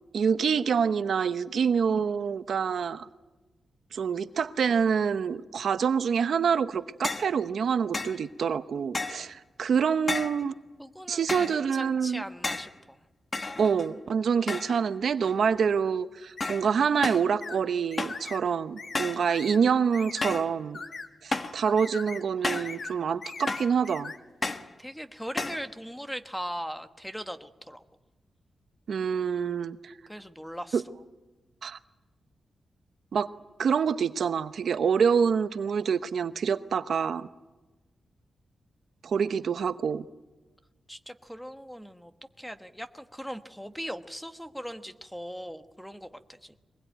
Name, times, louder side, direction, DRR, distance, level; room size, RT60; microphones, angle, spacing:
voice 1, 0.1-3.1 3.9-10.5 11.1-12.2 13.6-20.8 21.2-24.1 28.9-29.9 30.7-30.8 31.6-31.8 33.1-33.3 33.6-37.3 39.0-40.0, right 6 dB, 70° right, 11 dB, 0.8 m, -26 dB
sound 1, 7.0-7.3 7.9-8.2 8.9-9.3 10.1-10.4 11.3-11.6 12.4-12.8 13.3-14.0 14.5-14.9 15.2-15.6 16.4-16.7 17.0-17.3 18.0-18.3 18.9-19.3 20.2-20.5 21.3-21.6 22.4-22.8 23.5-23.8 24.4-24.7 25.4-25.7, left 3 dB, 30° left, 1.3 m, -32 dB
voice 2, 10.8-13.0 24.8-27.8 30.1-30.8 40.9-42.1 42.4-46.6, equal, ahead, 8 dB, 1.2 m, -39 dB
sound 2, 16.4-16.6 17.4-17.6 17.9-18.4 18.8-19.0 19.3-19.6 19.9-20.3 20.7-21.1 21.6-22.2 22.5-22.9 23.2-24.2, left 4 dB, 50° left, 1.7 m, -40 dB
23.0 x 21.0 x 9.2 m, 1.2 s
wide cardioid pair, 115°, 0 cm